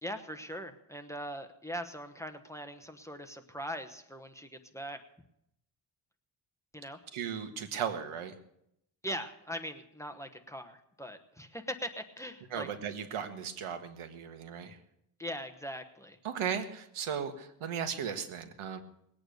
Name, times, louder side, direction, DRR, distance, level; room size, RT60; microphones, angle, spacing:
voice 1, 0.0-5.0 6.7-7.0 9.0-12.7 15.2-16.2, equal, 5° left, 7 dB, 1.1 m, -41 dB
voice 2, 7.1-8.3 12.5-14.8 16.2-18.8, right 7 dB, 75° right, 8 dB, 1.7 m, -36 dB
20.0 x 8.8 x 6.6 m, 0.76 s
cardioid pair, 130°, 49 cm